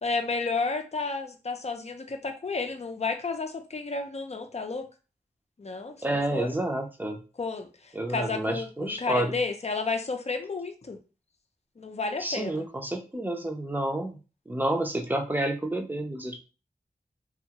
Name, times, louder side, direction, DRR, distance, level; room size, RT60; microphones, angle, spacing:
voice 1, 0.0-4.9 5.6-6.5 7.4-11.0 11.8-12.6, left 4 dB, 40° left, 6 dB, 0.6 m, -32 dB
voice 2, 6.0-7.2 7.9-9.3 12.2-14.2 14.5-16.4, right 1 dB, 10° right, 3 dB, 0.7 m, -29 dB
2.6 x 2.4 x 2.9 m, 0.32 s
cardioid pair, 50°, 16 cm